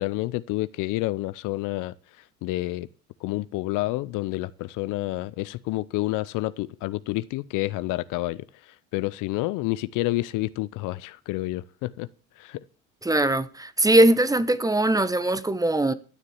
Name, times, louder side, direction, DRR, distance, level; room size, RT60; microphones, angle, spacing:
voice 1, 0.0-1.9 2.4-2.9 3.2-12.1 12.4-12.6, left 18 dB, 60° left, 0.7 m, -29 dB
voice 2, 13.0-15.9, right 1 dB, 10° right, 1.0 m, -21 dB
12.5 x 6.7 x 7.2 m
supercardioid pair, 85°, 35 cm